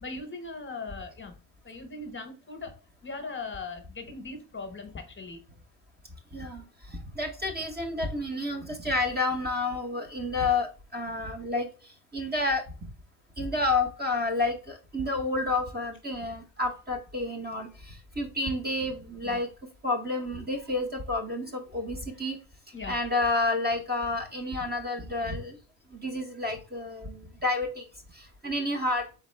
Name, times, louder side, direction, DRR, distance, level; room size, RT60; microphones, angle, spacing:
voice 1, 0.0-1.3 1.6-2.7 3.0-5.4 19.2-19.4 22.7-23.0, left 3 dB, 25° left, 6 dB, 0.9 m, -39 dB
voice 2, 6.3-12.6 13.4-19.5 19.8-22.4 22.9-25.6 25.9-27.9 28.1-29.1, left 2 dB, 20° right, 3 dB, 0.8 m, -30 dB
4.0 x 3.6 x 3.2 m, 0.37 s
cardioid pair, 105°, 44 cm